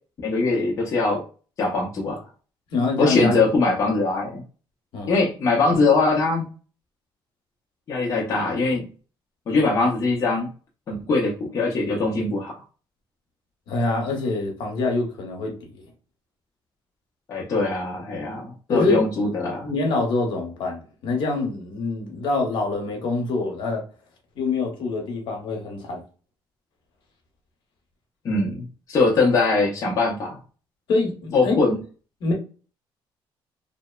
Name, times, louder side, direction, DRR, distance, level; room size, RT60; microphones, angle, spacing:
voice 1, 0.2-1.2 1.6-2.2 3.0-4.4 5.1-6.5 7.9-8.9 9.5-10.5 10.9-12.6 17.3-19.7 28.2-30.4 31.3-31.8, left 3 dB, 35° left, 0.6 m, -22 dB
voice 2, 2.7-3.5 4.9-5.1 13.7-15.8 18.7-19.0 19.6-23.8 24.4-26.0 30.9-31.6 32.2-32.3, left 3 dB, 65° left, 0.9 m, -25 dB
2.8 x 2.0 x 2.3 m
cardioid pair, 160°, 9 cm